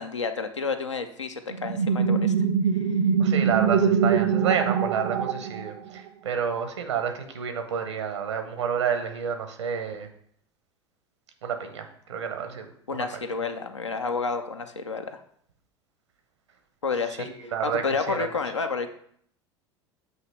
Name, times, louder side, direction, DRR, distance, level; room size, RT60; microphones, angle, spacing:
voice 1, 0.0-2.3 12.9-15.2 16.8-18.9, left 4 dB, 85° left, 7 dB, 0.5 m, -30 dB
sound 1, 1.5-6.0, right 6 dB, 60° right, 0.5 m, -23 dB
voice 2, 3.2-10.1 11.4-12.6 12.9-13.0 17.3-17.8 18.1-18.3, right 7 dB, 75° right, 7 dB, 0.9 m, -29 dB
7.9 x 3.0 x 4.3 m, 0.65 s
figure-of-eight pair, 75°, 15 cm